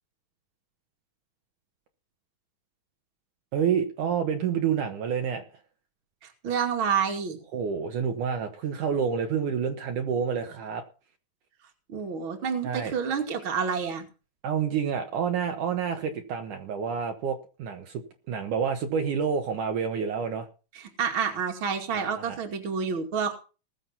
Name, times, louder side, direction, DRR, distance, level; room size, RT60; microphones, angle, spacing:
voice 1, 3.5-5.4 7.5-10.8 12.6-12.9 14.4-20.5 21.9-22.4, right 7 dB, 65° right, 2.7 m, -28 dB
voice 2, 6.2-7.4 11.9-14.1 20.8-23.3, right 6 dB, 40° right, 2.8 m, -29 dB
20.0 x 7.6 x 5.7 m
omnidirectional pair, 4.1 m